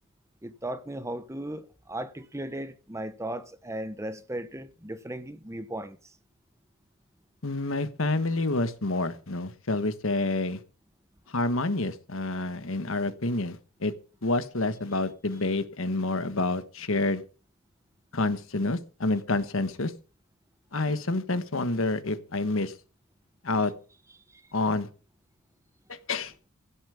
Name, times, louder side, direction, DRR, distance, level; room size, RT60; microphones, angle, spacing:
voice 1, 0.4-6.2 24.3-24.4, right 1 dB, 15° right, 1.0 m, -37 dB
voice 2, 7.4-10.6 11.3-13.9 14.2-17.2 18.1-19.9 20.7-22.7 23.4-23.7 24.5-24.9 25.9-26.3, left 2 dB, 65° left, 1.4 m, -28 dB
16.0 x 7.2 x 7.1 m
head